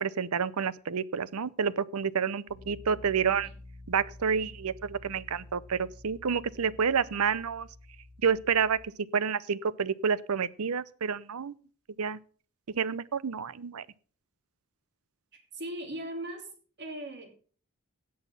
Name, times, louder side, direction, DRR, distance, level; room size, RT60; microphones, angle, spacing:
voice 1, 0.0-3.5 3.9-7.7 8.2-8.8 9.1-11.5 12.0-12.2 12.8-13.8, right 6 dB, 85° right, 0.6 m, -29 dB
Piano, 2.5-8.8, left 2 dB, 35° left, 5.9 m, -50 dB
voice 2, 15.3-16.5 16.8-17.3, right 1 dB, 50° right, 3.5 m, -39 dB
17.0 x 6.4 x 5.6 m
head